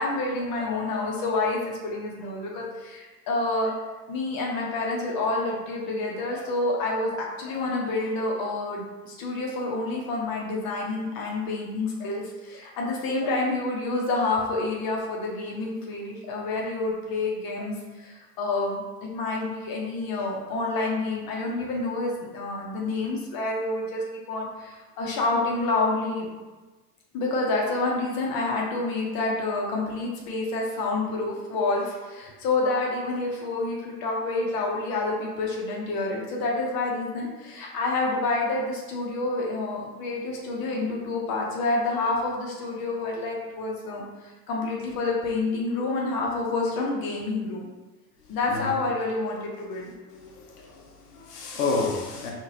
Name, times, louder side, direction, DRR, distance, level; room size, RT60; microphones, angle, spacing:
voice 1, 0.0-26.3 27.1-47.7 48.3-49.9, left 2 dB, 50° left, -2 dB, 0.8 m, -28 dB
voice 2, 50.1-52.3, left 3 dB, 90° left, -1 dB, 0.7 m, -30 dB
3.8 x 2.5 x 2.8 m, 1.2 s
hypercardioid pair, 70°, 46 cm